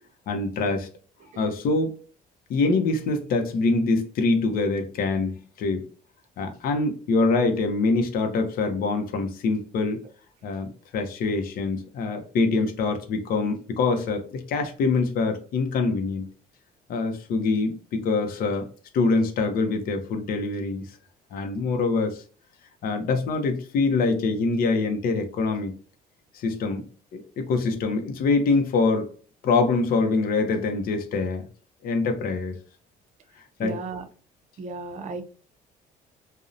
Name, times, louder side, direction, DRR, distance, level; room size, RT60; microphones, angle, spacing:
voice 1, 0.3-0.9 1.4-1.9 2.5-5.8 6.4-10.0 10.4-16.3 16.9-18.7 18.9-20.8 21.3-22.2 22.8-25.7 26.3-26.8 27.1-29.1 29.4-31.4 31.8-32.6 33.6-33.8, left 3 dB, 60° left, 5 dB, 0.6 m, -24 dB
voice 2, 33.6-34.0 34.6-35.2, right 4 dB, 45° right, 7 dB, 0.5 m, -34 dB
2.7 x 2.0 x 2.4 m, 0.40 s
cardioid pair, 110°, 17 cm